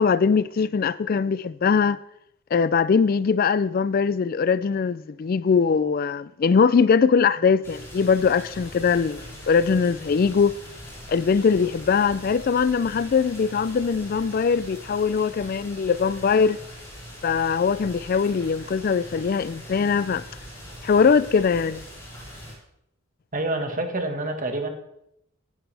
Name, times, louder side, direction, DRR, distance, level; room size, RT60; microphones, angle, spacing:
voice 1, 0.0-2.0 2.5-10.5 11.1-16.6 17.2-20.2 20.8-21.8, left 5 dB, 45° left, 0.3 m, -21 dB
sound 1, 7.6-22.5, equal, 15° left, 5.9 m, -42 dB
voice 2, 23.3-24.7, right 2 dB, 40° right, 1.5 m, -27 dB
18.5 x 10.5 x 3.4 m
head